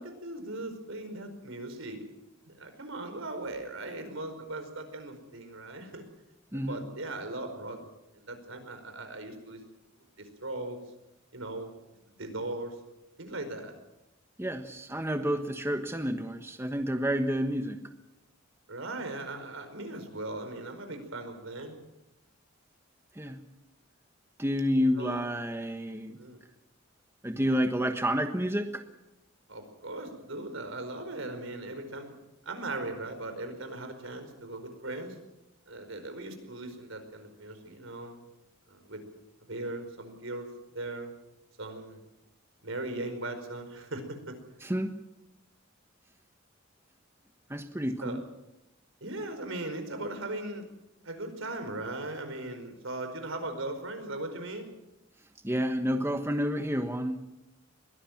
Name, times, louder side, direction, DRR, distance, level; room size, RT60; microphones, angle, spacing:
voice 1, 0.0-2.0 2.4-6.0 6.5-7.8 8.1-9.6 10.2-10.8 11.3-11.7 12.2-12.7 13.2-13.7 18.7-21.8 25.0-25.2 26.2-26.4 29.5-32.2 32.4-35.2 35.7-38.2 38.7-39.0 39.5-40.5 40.7-41.1 41.6-42.0 42.6-44.3 48.0-48.2 49.0-50.6 51.0-54.7, right 2 dB, 75° right, 7 dB, 4.9 m, -38 dB
voice 2, 6.5-6.8 14.4-17.8 23.1-23.4 24.4-26.2 27.2-28.8 44.6-44.9 47.5-48.2 55.4-57.2, equal, 10° right, 6 dB, 1.3 m, -29 dB
22.5 x 17.5 x 7.4 m, 0.92 s
head